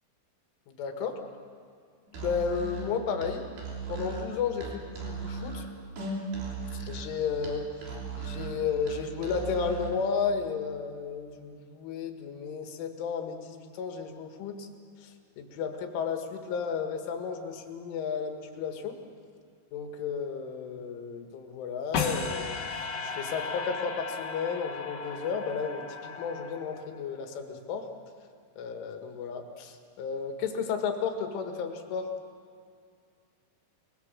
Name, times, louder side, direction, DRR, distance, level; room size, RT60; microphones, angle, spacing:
voice 1, 0.7-1.2 2.2-3.4 3.9-5.7 6.7-14.7 15.0-19.0 19.7-27.9 28.6-32.1, left 6 dB, 85° left, 5 dB, 4.2 m, -33 dB
Musical instrument, 2.1-10.0, right 4 dB, 65° right, 5.8 m, -37 dB
sound 1, 21.9-27.1, left 5 dB, 55° left, 3.0 m, -35 dB
28.0 x 20.5 x 7.4 m, 2.2 s
omnidirectional pair, 5.5 m